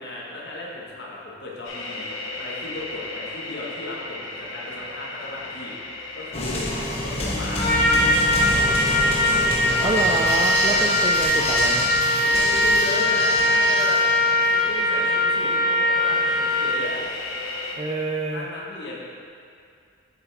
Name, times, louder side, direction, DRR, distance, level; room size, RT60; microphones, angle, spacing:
voice 1, 0.0-2.1 2.3-6.7 7.0-9.7 10.7-10.9 12.2-17.0 18.3-19.0, left 2 dB, 55° left, -4 dB, 1.4 m, -35 dB
sound 1, 1.6-17.7, left 3 dB, 75° left, 0.9 m, -35 dB
sound 2, 6.3-14.8, left 1 dB, 30° left, 1.1 m, -28 dB
Trumpet, 7.6-16.9, left 1 dB, ahead, 1.6 m, -21 dB
voice 2, 9.8-11.9 17.8-18.5, right 2 dB, 20° right, -1 dB, 0.4 m, -27 dB
7.2 x 7.2 x 3.5 m, 2.4 s
head